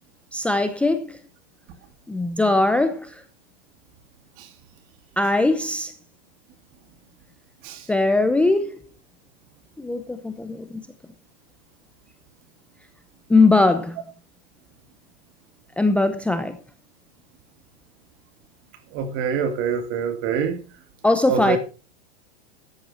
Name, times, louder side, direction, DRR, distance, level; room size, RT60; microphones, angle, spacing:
voice 1, 0.3-1.2 2.1-3.2 5.2-5.9 7.9-8.8 9.8-10.8 13.3-14.0 15.8-16.6 21.0-21.6, left 2 dB, 5° left, 0.7 m, -20 dB
voice 2, 18.9-20.6 21.3-21.6, right 7 dB, 40° right, 2.6 m, -25 dB
13.5 x 9.9 x 4.4 m
supercardioid pair, 145°, 33 cm